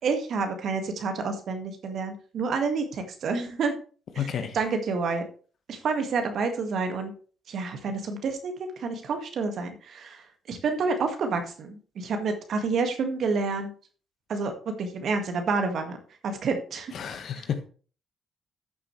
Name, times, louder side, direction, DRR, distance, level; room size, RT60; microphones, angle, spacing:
voice 1, 0.0-3.7 4.2-4.3 4.5-5.2 5.7-7.1 7.5-13.7 14.3-16.0 16.2-16.9, right 4 dB, 65° right, 6 dB, 1.8 m, -29 dB
voice 2, 4.2-4.6 16.9-17.7, left 8 dB, 65° left, 8 dB, 1.3 m, -31 dB
12.0 x 6.7 x 3.2 m, 0.40 s
hypercardioid pair, 45°, 0 cm